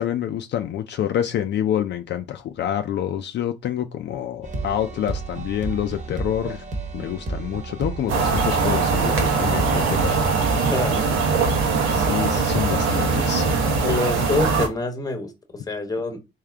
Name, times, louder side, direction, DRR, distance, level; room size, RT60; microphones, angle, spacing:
voice 1, 0.0-6.6 6.9-10.1 11.9-13.5, left 10 dB, 65° left, 0.4 m, -27 dB
sound 1, 4.4-10.6, right 3 dB, 40° right, 1.1 m, -32 dB
sound 2, 8.1-14.7, right 4 dB, 85° right, 0.9 m, -21 dB
voice 2, 10.6-11.1 13.8-16.2, left 3 dB, 20° left, 0.9 m, -26 dB
3.5 x 2.7 x 3.4 m
cardioid pair, 90°, 20 cm